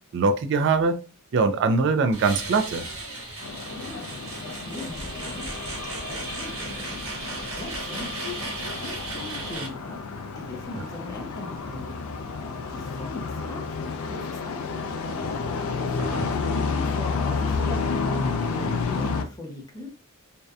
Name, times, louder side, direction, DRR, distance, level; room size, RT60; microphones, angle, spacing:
voice 1, 0.1-1.0 1.3-2.9 16.0-16.3, right 4 dB, 55° right, 9 dB, 0.3 m, -22 dB
sound 1, 2.1-9.7, right 2 dB, 70° right, 1.3 m, -35 dB
sound 2, 3.4-19.2, left 4 dB, 75° left, 0.3 m, -30 dB
voice 2, 3.7-8.5 8.8-10.0 10.4-11.9 12.7-15.3 15.8-18.0 18.5-20.0, left 1 dB, 15° left, 1 dB, 0.6 m, -40 dB
2.6 x 2.1 x 2.3 m, 0.34 s
head